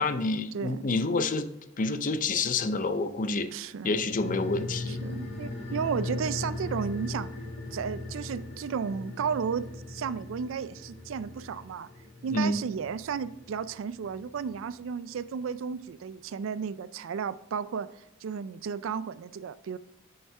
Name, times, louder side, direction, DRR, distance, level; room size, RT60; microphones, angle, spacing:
voice 1, 0.0-1.5 1.8-3.5 3.8-5.0 12.3-12.6, left 3 dB, 40° left, 11 dB, 0.5 m, -28 dB
voice 2, 0.5-0.9 3.5-3.9 4.9-7.3 7.7-11.9 12.2-19.8, right 6 dB, 70° right, 15 dB, 0.3 m, -33 dB
sound 1, 4.0-14.8 15.1-15.2, left 2 dB, 65° left, 1.9 m, -39 dB
7.1 x 5.5 x 3.3 m, 0.87 s
head